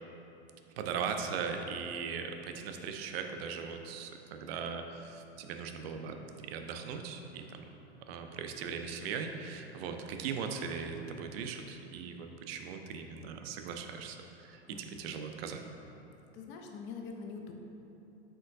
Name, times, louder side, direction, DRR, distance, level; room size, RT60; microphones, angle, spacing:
voice 1, 0.8-7.4 8.1-15.6, right 6 dB, 60° right, 5 dB, 0.5 m, -39 dB
voice 2, 14.7-15.2 16.3-17.5, left 5 dB, 35° left, 2 dB, 0.5 m, -44 dB
4.4 x 3.6 x 2.6 m, 2.9 s
hypercardioid pair, 105°, 34 cm